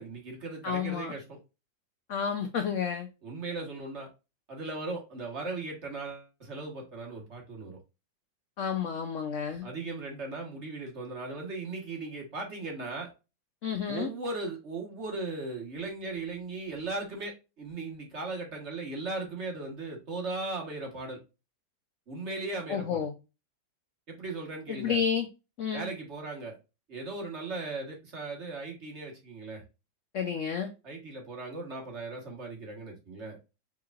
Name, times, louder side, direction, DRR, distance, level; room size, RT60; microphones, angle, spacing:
voice 1, 0.0-1.4 3.2-4.1 4.5-7.8 9.6-13.1 13.9-21.2 22.1-23.0 24.1-25.0 25.7-26.6 26.9-29.6 30.8-33.4, right 3 dB, 40° right, 1.5 m, -37 dB
voice 2, 0.6-1.1 2.1-3.1 8.6-9.7 13.6-14.1 22.7-23.1 24.7-25.3 25.6-25.9 30.1-30.7, left 7 dB, 75° left, 0.7 m, -30 dB
4.6 x 3.6 x 2.4 m
omnidirectional pair, 2.1 m